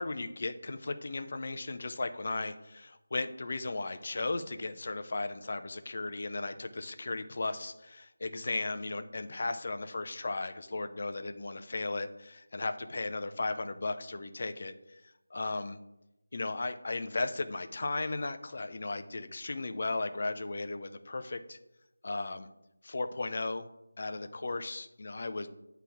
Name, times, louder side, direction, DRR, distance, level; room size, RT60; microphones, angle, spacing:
voice 1, 0.0-14.7 15.3-15.8 16.3-21.6 22.0-22.5 22.8-23.7 24.0-25.5, left 3 dB, 40° left, 9 dB, 0.5 m, -36 dB
9.0 x 3.4 x 6.0 m, 0.90 s
figure-of-eight pair, 165°, 0 cm